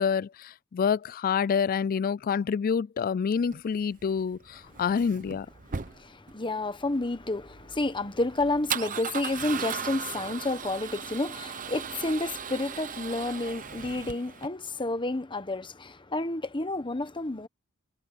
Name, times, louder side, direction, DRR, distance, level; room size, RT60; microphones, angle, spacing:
voice 1, 0.0-5.5, left 6 dB, 45° left, 0.3 m, -27 dB
Male speech man speaking / Car / Engine starting, 3.4-14.5, right 7 dB, 40° right, 0.8 m, -38 dB
voice 2, 5.9-17.5, left 2 dB, 25° left, 1.1 m, -30 dB
head